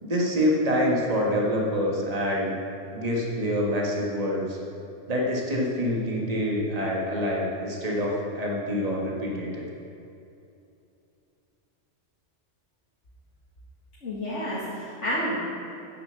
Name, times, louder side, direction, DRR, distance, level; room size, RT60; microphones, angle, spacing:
voice 1, 0.0-2.5 2.9-4.6 5.1-9.7, equal, 35° right, -2 dB, 1.6 m, -26 dB
voice 2, 14.0-15.4, equal, 75° left, -8 dB, 2.2 m, -30 dB
9.6 x 6.8 x 6.9 m, 2.7 s
omnidirectional pair, 1.2 m